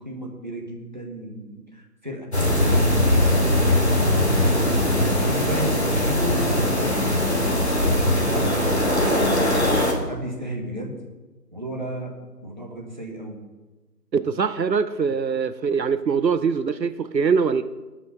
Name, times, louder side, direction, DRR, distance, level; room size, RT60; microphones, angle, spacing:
voice 1, 0.0-2.3 2.6-4.4 5.3-9.7 10.1-11.0 11.5-13.4, equal, 30° right, 0 dB, 1.4 m, -34 dB
sound 1, 2.3-9.9, left 1 dB, 40° left, 1.9 m, -20 dB
voice 2, 14.1-17.6, right 5 dB, 85° right, 13 dB, 0.7 m, -23 dB
12.5 x 6.2 x 5.6 m, 1.2 s
figure-of-eight pair, 170°, 49 cm